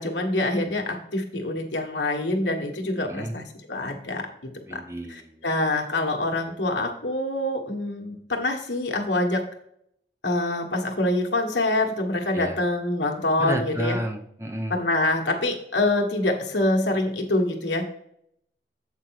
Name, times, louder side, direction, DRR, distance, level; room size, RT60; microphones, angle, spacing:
voice 1, 0.0-4.8 5.1-9.4 10.2-14.0 14.7-17.8, left 2 dB, 80° left, 2 dB, 1.4 m, -25 dB
voice 2, 4.7-5.4 12.3-12.6 13.4-14.8, right 1 dB, 15° right, 5 dB, 0.8 m, -31 dB
8.2 x 4.7 x 4.6 m, 0.72 s
head